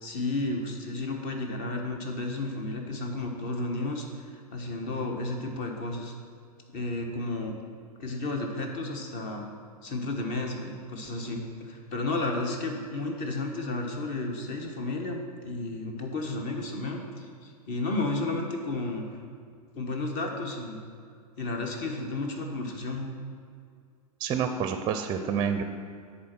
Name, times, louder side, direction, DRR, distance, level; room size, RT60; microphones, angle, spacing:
voice 1, 0.0-4.1 4.5-6.1 6.7-7.5 8.0-9.5 9.8-19.2 19.8-20.8 21.4-23.1, left 2 dB, 40° left, 2 dB, 1.3 m, -32 dB
voice 2, 24.2-25.6, right 7 dB, 25° right, 7 dB, 0.5 m, -28 dB
10.0 x 4.2 x 6.0 m, 2.2 s
hypercardioid pair, 105°, 20 cm